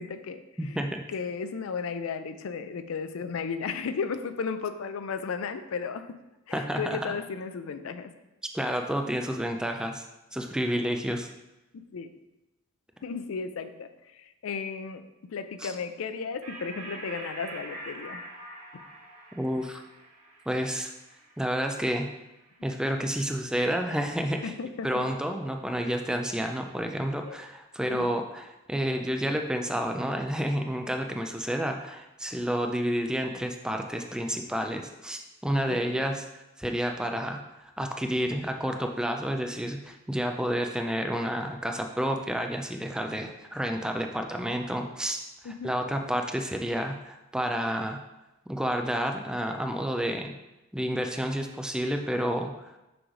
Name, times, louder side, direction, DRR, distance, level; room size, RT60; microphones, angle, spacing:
voice 1, 0.0-0.8 1.1-6.1 6.5-8.1 11.7-12.1 13.0-15.0 15.3-18.2 18.7-18.8 24.4-25.0 27.2-27.4 27.9-28.1 35.7-36.0 45.4-45.7, left 5 dB, 75° left, 10 dB, 0.4 m, -34 dB
voice 2, 0.6-1.0 6.5-7.1 8.5-10.0 10.3-11.3 15.6-15.7 19.4-19.8 20.5-20.9 21.4-22.1 22.6-24.5 24.8-36.2 36.6-48.0 48.5-50.3 50.7-52.5, equal, 5° right, 4 dB, 0.3 m, -30 dB
sound 1, 16.4-23.3, right 2 dB, 75° right, 2.1 m, -45 dB
6.1 x 3.2 x 5.0 m, 0.98 s
head